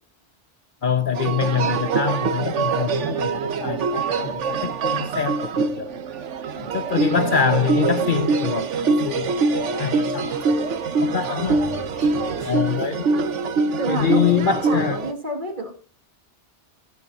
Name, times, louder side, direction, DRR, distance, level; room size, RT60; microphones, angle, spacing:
voice 1, 0.8-5.9 6.7-10.6 11.0-11.6 12.4-13.1 13.9-15.0, left 7 dB, 55° left, 0.7 m, -25 dB
sound 1, 1.1-15.1, right 4 dB, 90° right, 1.2 m, -24 dB
voice 2, 6.6-6.9 11.2-11.5 12.1-12.4 13.8-15.7, right 2 dB, 45° right, 2.5 m, -30 dB
sound 2, 8.3-13.6, equal, 15° left, 5.1 m, -45 dB
16.0 x 13.0 x 2.7 m
omnidirectional pair, 1.2 m